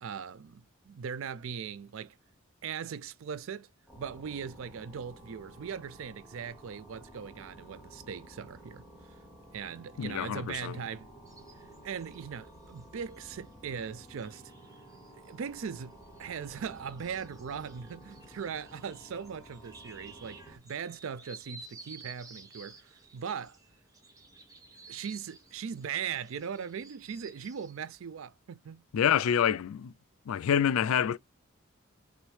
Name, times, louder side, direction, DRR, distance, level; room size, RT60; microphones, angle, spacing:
voice 1, 0.0-2.2 2.6-3.7 4.0-8.8 9.5-11.1 11.8-14.4 15.1-23.6 24.9-28.8, right 7 dB, 70° right, 0.4 m, -39 dB
sound 1, 3.9-20.6, right 1 dB, ahead, 1.7 m, -53 dB
voice 2, 10.0-10.8 28.9-29.9 30.3-31.2, left 8 dB, 80° left, 0.3 m, -27 dB
sound 2, 11.3-27.9, right 3 dB, 15° right, 0.7 m, -54 dB
6.0 x 2.6 x 3.1 m
head